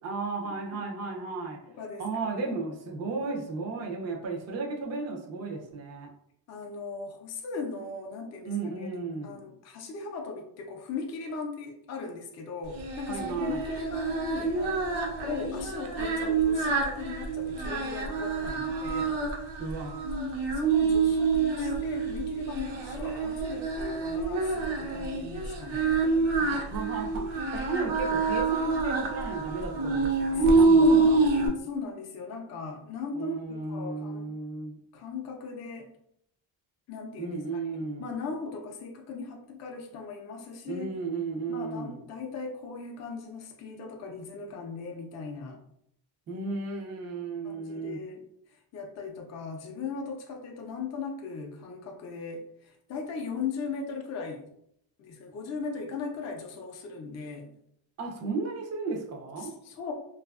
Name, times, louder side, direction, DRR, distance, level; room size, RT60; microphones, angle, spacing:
voice 1, 0.0-1.6 2.0-6.1 8.4-9.4 13.1-13.6 19.6-20.0 26.4-31.2 33.1-34.8 37.2-38.1 40.7-42.0 46.3-48.0 58.0-59.5, right 3 dB, 35° right, 0 dB, 0.5 m, -34 dB
voice 2, 1.7-2.5 6.5-8.9 9.2-19.2 20.5-26.0 30.8-33.3 33.7-34.3 34.9-35.9 36.9-40.9 41.5-45.6 47.4-48.2 48.7-54.4 55.0-57.5 59.4-59.9, left 4 dB, 35° left, 1 dB, 0.4 m, -38 dB
Singing, 12.7-31.5, right 3 dB, 70° right, 0.7 m, -27 dB
2.6 x 2.4 x 2.3 m, 0.73 s
cardioid pair, 130°, 49 cm